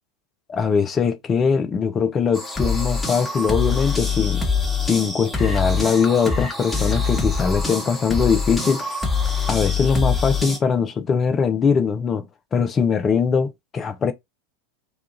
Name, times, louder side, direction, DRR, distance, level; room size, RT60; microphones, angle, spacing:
voice 1, 0.5-4.4 4.9-9.0 9.5-12.3 12.5-14.1, left 6 dB, 25° left, 0.5 m, -21 dB
sound 1, 2.3-10.6, left 4 dB, 10° left, 1.1 m, -24 dB
2.9 x 2.4 x 3.8 m
figure-of-eight pair, 85°, 0 cm